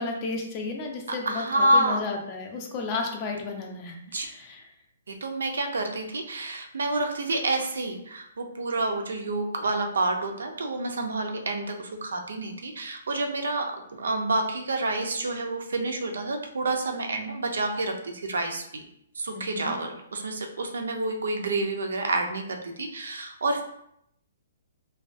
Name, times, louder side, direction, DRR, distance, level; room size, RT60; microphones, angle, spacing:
voice 1, 0.0-4.7 19.3-19.8, left 3 dB, 30° left, 2 dB, 0.4 m, -33 dB
voice 2, 1.3-2.0 4.1-4.3 5.1-13.6 13.9-18.8 19.2-23.6, right 2 dB, 90° right, 4 dB, 0.4 m, -28 dB
2.3 x 2.2 x 2.4 m, 0.74 s
hypercardioid pair, 155°, 0 cm